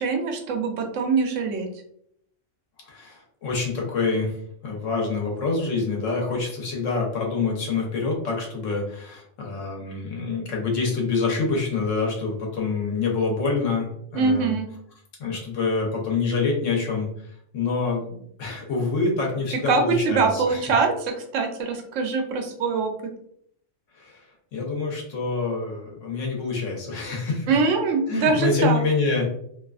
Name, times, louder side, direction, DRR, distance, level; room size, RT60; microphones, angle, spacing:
voice 1, 0.0-1.7 14.1-14.7 19.7-22.9 27.5-28.8, right 4 dB, 80° right, 4 dB, 0.9 m, -23 dB
voice 2, 2.8-14.6 15.2-20.6 23.9-27.6 28.1-29.3, left 4 dB, 85° left, -1 dB, 1.1 m, -26 dB
2.7 x 2.3 x 2.3 m, 0.70 s
omnidirectional pair, 1.3 m